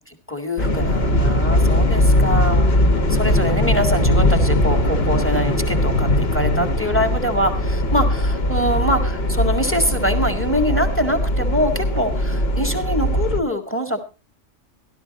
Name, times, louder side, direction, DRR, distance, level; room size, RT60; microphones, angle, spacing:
voice 1, 0.3-14.0, equal, 10° left, 6 dB, 1.8 m, -24 dB
sound 1, 0.6-13.4, left 1 dB, 55° left, 1.6 m, -19 dB
14.0 x 12.5 x 4.1 m, 0.33 s
omnidirectional pair, 1.3 m